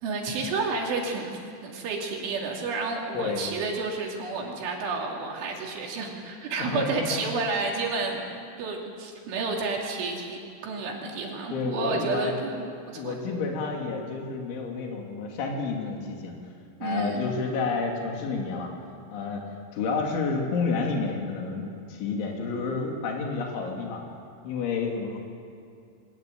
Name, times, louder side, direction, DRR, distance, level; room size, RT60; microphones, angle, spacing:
voice 1, 0.0-8.3 8.6-13.2 16.8-17.3, right 3 dB, 80° right, -1 dB, 5.5 m, -31 dB
voice 2, 3.1-3.5 6.6-7.2 11.5-12.3 13.0-16.3 16.8-18.7 19.1-19.4 19.7-24.0 24.5-25.2, left 4 dB, 75° left, 1 dB, 5.1 m, -30 dB
25.0 x 20.5 x 9.2 m, 2.4 s
omnidirectional pair, 5.4 m